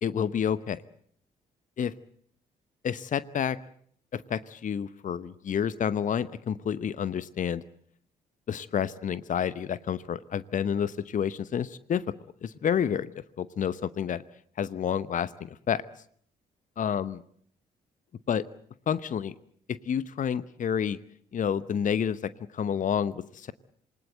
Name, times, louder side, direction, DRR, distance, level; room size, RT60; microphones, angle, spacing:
voice 1, 0.0-0.8 1.8-1.9 2.8-3.6 4.1-7.6 8.5-12.0 12.4-13.1 13.4-14.2 14.6-15.8 16.8-17.2 18.3-18.4 18.9-19.3 19.7-21.0 21.3-23.5, left 8 dB, 40° left, 17 dB, 0.9 m, -29 dB
27.5 x 20.0 x 8.0 m, 0.64 s
figure-of-eight pair, 40°, 20 cm